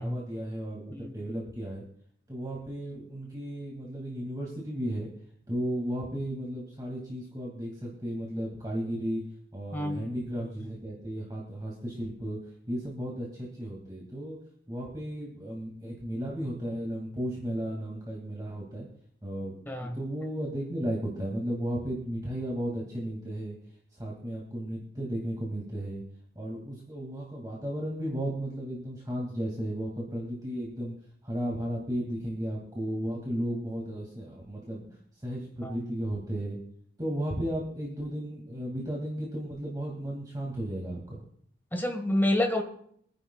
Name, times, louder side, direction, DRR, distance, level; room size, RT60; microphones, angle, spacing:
voice 1, 0.0-1.8 2.3-5.1 5.5-9.3 9.5-14.4 14.7-18.9 19.2-19.5 19.8-23.6 23.9-26.0 26.4-30.9 31.2-35.0 35.2-36.6 37.0-41.2, equal, 20° right, -3 dB, 2.3 m, -34 dB
voice 2, 9.7-10.1 10.3-10.4 19.7-20.0 35.6-36.0 41.7-42.6, left 1 dB, 10° left, 4 dB, 1.4 m, -29 dB
25.5 x 10.0 x 2.3 m, 0.66 s
head